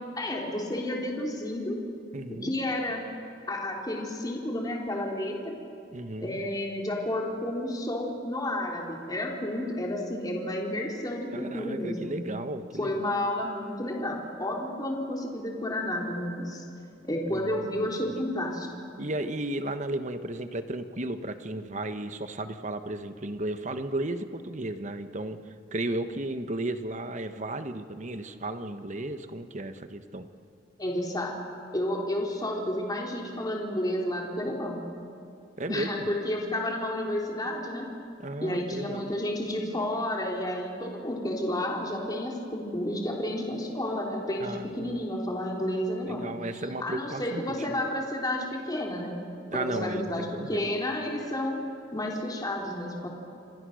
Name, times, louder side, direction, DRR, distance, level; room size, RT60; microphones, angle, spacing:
voice 1, 0.2-1.8 2.3-3.0 3.5-5.5 6.2-12.2 12.8-16.6 17.0-18.7 30.8-31.4 31.7-34.9 35.7-37.9 38.4-46.3 46.8-49.3 49.5-53.1, left 1 dB, 20° left, 0 dB, 3.1 m, -31 dB
voice 2, 2.1-2.5 5.9-6.4 11.3-13.1 17.3-18.1 19.0-25.4 25.7-30.3 35.6-36.1 38.2-39.1 44.4-45.0 46.1-47.8 49.5-50.7, right 1 dB, 40° right, 9 dB, 1.3 m, -34 dB
29.5 x 25.0 x 6.4 m, 2.6 s
head